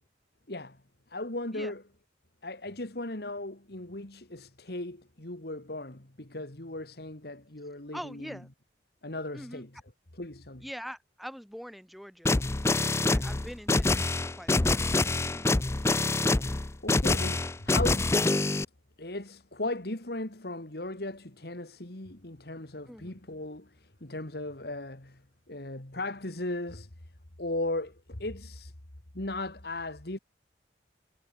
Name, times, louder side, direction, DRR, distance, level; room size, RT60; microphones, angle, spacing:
voice 1, 0.5-0.8 1.1-1.8 2.4-8.4 9.0-9.8 10.1-10.7 16.8-18.2 19.0-26.9 27.4-28.7 29.1-30.2, left 2 dB, 60° left, 2.4 m, -37 dB
voice 2, 7.9-8.5 9.3-9.6 10.6-12.3 13.0-14.9 15.3-15.6 22.9-23.2, equal, ahead, 4.9 m, -43 dB
sound 1, 12.3-18.7, left 2 dB, 15° left, 0.4 m, -26 dB
head